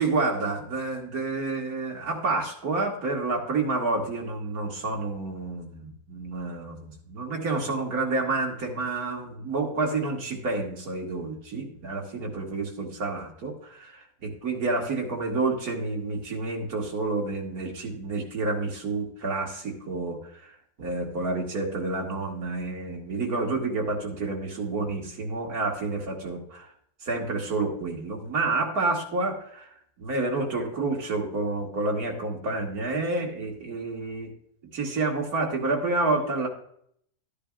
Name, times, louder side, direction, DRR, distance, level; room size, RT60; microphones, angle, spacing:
voice 1, 0.0-20.2 20.8-26.7 27.0-29.7 30.0-34.3 34.7-36.5, right 3 dB, 70° right, -1 dB, 2.5 m, -29 dB
13.0 x 10.0 x 2.4 m, 0.66 s
omnidirectional pair, 1.6 m